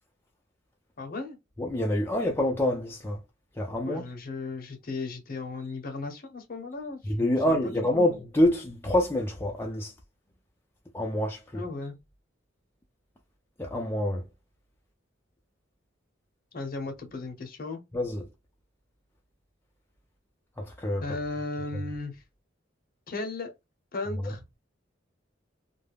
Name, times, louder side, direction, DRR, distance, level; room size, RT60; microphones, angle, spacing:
voice 1, 1.0-1.4 3.8-8.0 11.5-12.0 16.5-17.8 21.0-22.2 23.1-23.5 23.9-24.6, left 3 dB, 50° left, 0.7 m, -36 dB
voice 2, 1.6-3.2 3.6-4.0 7.0-9.9 10.9-11.6 13.6-14.2 17.9-18.2 20.6-21.1 21.7-21.8 24.2-24.3, left 1 dB, 10° left, 0.4 m, -27 dB
2.3 x 2.0 x 3.2 m
head